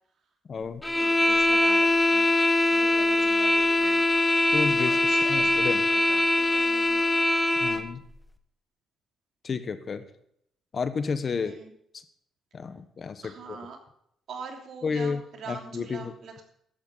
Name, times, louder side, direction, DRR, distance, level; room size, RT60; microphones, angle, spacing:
voice 1, 0.5-0.8 4.5-5.8 7.6-8.0 9.4-10.1 10.7-11.6 11.9-12.0 12.5-13.6 14.8-16.1, left 5 dB, 45° left, 10 dB, 1.1 m, -31 dB
sound 1, 0.8-7.9, left 2 dB, 10° left, 1.1 m, -22 dB
voice 2, 1.0-2.3 2.6-4.0 4.8-7.0 11.3-11.7 13.2-13.8 14.3-16.4, right 4 dB, 65° right, 2 dB, 2.9 m, -43 dB
16.0 x 11.5 x 4.0 m, 0.72 s
cardioid pair, 90°, 0 cm